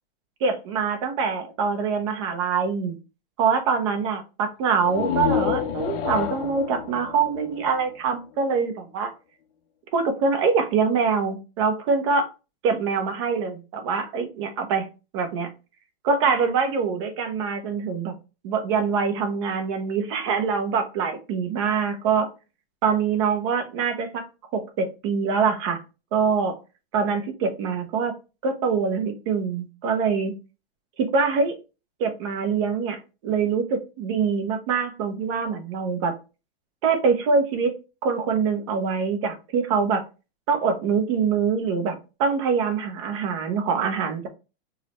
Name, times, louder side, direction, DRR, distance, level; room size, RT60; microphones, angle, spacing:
voice 1, 0.4-3.0 3.4-9.1 9.9-12.3 12.6-14.9 15.1-15.5 16.0-18.1 18.4-22.3 22.8-24.2 24.5-25.8 26.1-26.6 26.9-28.1 28.4-30.3 31.0-31.5 32.0-36.1 36.8-37.7 38.0-40.0 40.5-44.3, right 5 dB, 30° right, 6 dB, 0.5 m, -24 dB
sound 1, 4.8-8.4, left 8 dB, 65° left, 0.6 m, -28 dB
4.6 x 2.1 x 2.9 m, 0.31 s
supercardioid pair, 165°, 31 cm